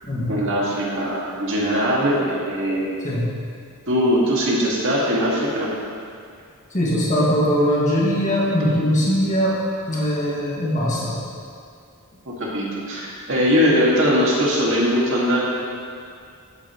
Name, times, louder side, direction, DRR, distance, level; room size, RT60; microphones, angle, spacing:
voice 1, 0.3-3.0 3.9-5.7 12.3-15.4, equal, 60° right, -4 dB, 2.2 m, -21 dB
voice 2, 6.7-9.6 9.9-11.2, equal, 35° left, -7 dB, 2.0 m, -21 dB
15.0 x 7.9 x 3.2 m, 2.3 s
head